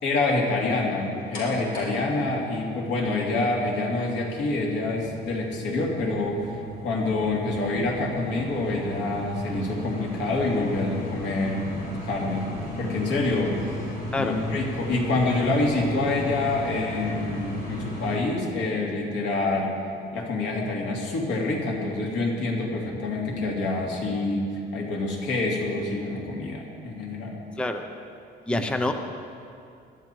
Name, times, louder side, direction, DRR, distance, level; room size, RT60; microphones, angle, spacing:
voice 1, 0.0-11.7 12.0-13.8 14.2-19.7 20.1-27.4 28.5-28.7, left 2 dB, 85° left, -1 dB, 2.9 m, -27 dB
sound 1, 1.3-18.2, left 1 dB, 50° left, 4.1 m, -36 dB
voice 2, 28.5-28.9, left 2 dB, 5° left, 6 dB, 0.5 m, -26 dB
21.0 x 12.5 x 4.6 m, 2.5 s
cardioid pair, 175°, 18 cm